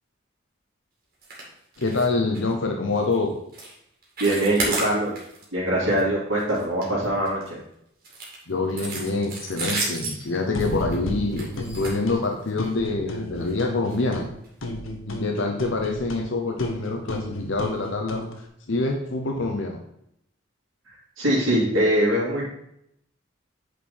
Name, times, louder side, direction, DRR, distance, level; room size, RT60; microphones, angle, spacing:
sound 1, 1.2-1.5 1.7-2.1 2.3-2.5 3.0-3.1 3.5-3.7 4.0-5.4 5.8-6.0 6.4-7.5 8.0-12.6 13.4-13.5 13.9-14.0 14.4-14.5, right 2 dB, 45° right, 2.5 m, -32 dB
voice 1, 1.8-3.3 8.5-14.3 15.1-18.3 18.7-19.8, left 3 dB, 70° left, 3 dB, 0.8 m, -26 dB
voice 2, 4.2-5.1 5.5-7.6 21.2-22.4, right 1 dB, 85° right, -7 dB, 3.1 m, -22 dB
sound 2, 10.5-12.2 12.6-14.3 14.6-18.3, left 1 dB, 85° left, 1.2 m, -33 dB
9.0 x 4.8 x 4.3 m, 0.76 s
head